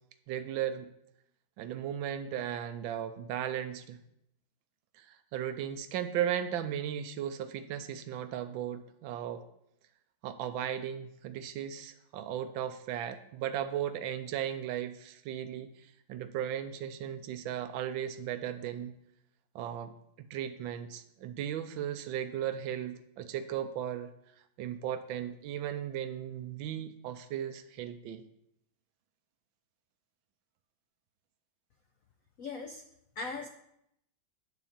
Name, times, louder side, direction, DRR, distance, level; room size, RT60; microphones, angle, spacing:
voice 1, 0.3-0.9 1.6-4.0 4.9-9.4 10.2-18.9 19.5-19.9 20.2-24.1 24.6-28.2, right 10 dB, 75° right, 10 dB, 1.4 m, -36 dB
voice 2, 32.4-32.8 33.2-33.5, left 4 dB, 80° left, 5 dB, 0.7 m, -38 dB
9.9 x 4.0 x 7.2 m, 0.77 s
omnidirectional pair, 2.2 m